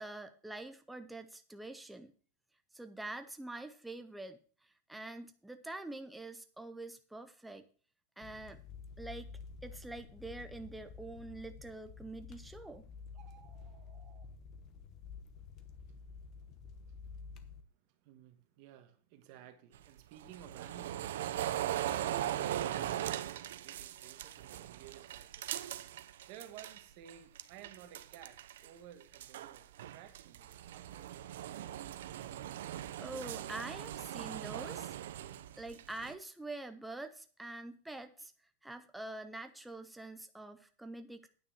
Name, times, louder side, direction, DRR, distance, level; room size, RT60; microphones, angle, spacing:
voice 1, 0.0-2.1 2.7-7.7 8.2-8.6 9.0-9.3 9.6-12.8 33.0-34.9 35.6-38.3 38.6-41.3, right 2 dB, 5° right, 0.5 m, -45 dB
sound 1, 8.2-17.6, left 5 dB, 30° left, 0.9 m, -50 dB
sound 2, 13.1-14.3, right 8 dB, 20° right, 1.3 m, -62 dB
voice 2, 16.7-17.1 17.9-25.6 26.3-31.8, right 9 dB, 40° right, 1.4 m, -55 dB
sound 3, 19.7-26.8 27.1-28.7 29.0-36.1, right 12 dB, 80° right, 0.7 m, -40 dB
9.4 x 5.9 x 7.1 m
supercardioid pair, 180°, 0 cm